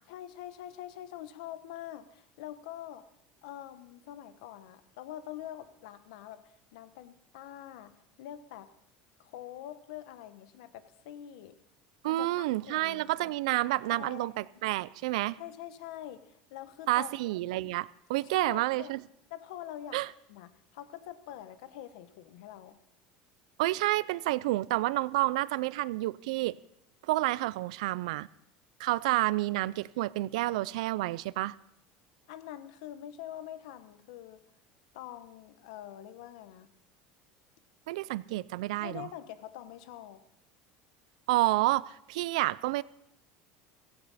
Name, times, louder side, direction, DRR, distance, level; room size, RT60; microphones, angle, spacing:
voice 1, 0.1-3.0 3.4-7.9 8.2-8.7 9.2-11.6 12.0-13.3 13.9-14.4 15.4-17.1 18.2-19.0 19.3-20.0 20.3-22.8 32.3-34.4 34.9-36.7 38.8-40.2, left 12 dB, 85° left, 1.1 m, -45 dB
voice 2, 12.0-15.4 16.9-19.0 19.9-20.1 23.6-26.6 27.0-28.3 28.8-31.6 37.9-39.1 41.3-42.8, right 18 dB, 90° right, 0.4 m, -29 dB
16.0 x 16.0 x 4.2 m
supercardioid pair, 130°, 4 cm